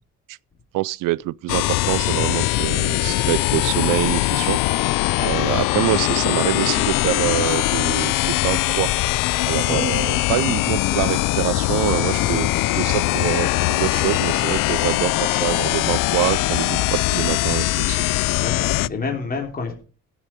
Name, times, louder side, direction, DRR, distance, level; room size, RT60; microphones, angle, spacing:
voice 1, 0.7-4.6 5.2-8.9 9.5-12.5 12.7-18.3, right 18 dB, 80° right, 0.5 m, -25 dB
sound 1, 1.5-18.9, left 19 dB, 90° left, 0.5 m, -21 dB
sound 2, 4.2-17.9, left 4 dB, 55° left, 6.1 m, -45 dB
voice 2, 12.1-13.0 14.3-14.4 18.3-19.7, left 4 dB, 30° left, 3.2 m, -30 dB
16.0 x 7.4 x 5.2 m
cardioid pair, 135°, 32 cm